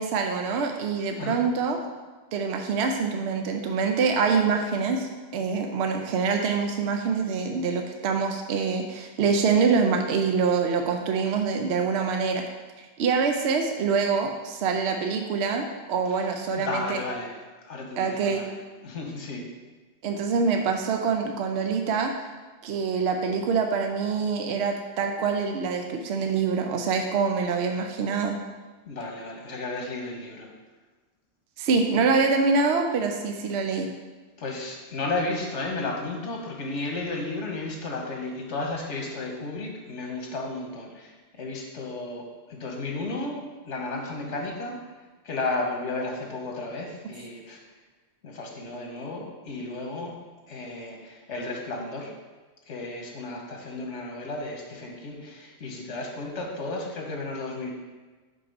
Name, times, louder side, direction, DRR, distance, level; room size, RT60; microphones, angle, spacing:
voice 1, 0.0-1.8 2.3-12.4 13.0-17.0 18.0-18.4 20.0-22.1 22.6-28.4 31.6-33.9, right 5 dB, 70° right, 4 dB, 0.8 m, -25 dB
voice 2, 16.5-17.4 17.7-18.6 18.8-19.4 28.9-30.5 34.4-44.8 45.2-47.6 48.2-50.1 50.5-52.1 52.7-57.7, left 2 dB, 85° left, 0 dB, 1.4 m, -33 dB
5.4 x 4.0 x 5.3 m, 1.3 s
omnidirectional pair, 1.2 m